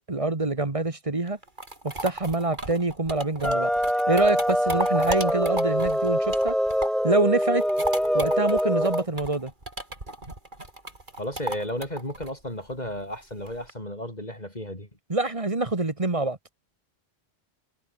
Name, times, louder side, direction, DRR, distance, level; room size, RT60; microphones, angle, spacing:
voice 1, 0.0-1.4 1.8-3.7 4.1-6.5 7.0-7.7 8.1-9.5 15.1-16.4, right 2 dB, 30° right, 1.7 m, -25 dB
sound 1, 1.3-7.1 7.4-13.7, right 2 dB, 45° right, 4.6 m, -36 dB
sound 2, 3.4-9.0, equal, ahead, 1.2 m, -24 dB
voice 2, 11.2-14.9, left 1 dB, 40° left, 8.2 m, -33 dB
omnidirectional pair, 1.1 m